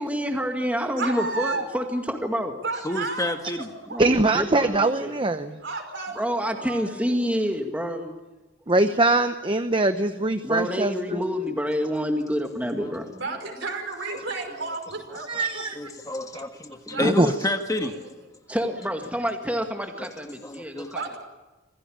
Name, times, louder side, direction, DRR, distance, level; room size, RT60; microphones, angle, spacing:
voice 1, 0.0-2.6 3.9-5.1 6.2-8.2 10.4-13.1 15.4-15.5 16.2-16.3 16.9-17.0 18.5-21.0, equal, 5° right, 3 dB, 2.0 m, -28 dB
voice 2, 0.9-1.7 2.6-4.1 5.6-7.5 13.1-15.7 16.9-17.4 17.7-18.1 20.9-21.2, right 3 dB, 65° right, 5 dB, 5.4 m, -33 dB
voice 3, 2.8-3.7 12.8-12.9 15.7-17.9 20.0-20.1 20.4-20.9, left 1 dB, 20° left, 5 dB, 1.5 m, -29 dB
voice 4, 4.0-5.6 8.7-11.2 15.3-15.8 17.0-17.3, right 2 dB, 25° right, 8 dB, 0.8 m, -22 dB
26.0 x 17.5 x 8.7 m, 1.1 s
head